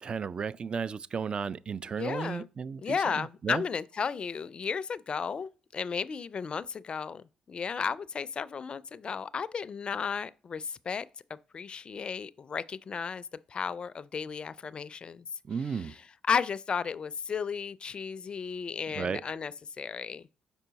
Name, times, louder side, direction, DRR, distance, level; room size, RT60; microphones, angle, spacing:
voice 1, 0.0-3.6 15.5-15.9 18.9-19.2, right 6 dB, 40° right, 0.3 m, -34 dB
voice 2, 2.0-2.5 2.8-15.3 15.7-15.9 16.3-20.3, left 6 dB, 45° left, 0.4 m, -34 dB
5.6 x 4.5 x 3.9 m
supercardioid pair, 60°, 2 cm